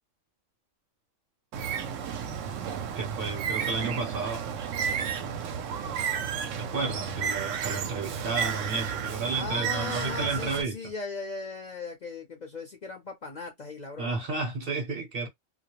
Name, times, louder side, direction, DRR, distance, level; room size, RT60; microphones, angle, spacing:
Bird, 1.5-10.6, right 7 dB, 80° right, 0.9 m, -32 dB
voice 1, 2.9-4.5 6.6-10.9 14.0-15.3, right 4 dB, 55° right, 0.8 m, -32 dB
voice 2, 9.3-14.2, left 3 dB, 45° left, 0.6 m, -37 dB
2.3 x 2.0 x 2.9 m
omnidirectional pair, 1.3 m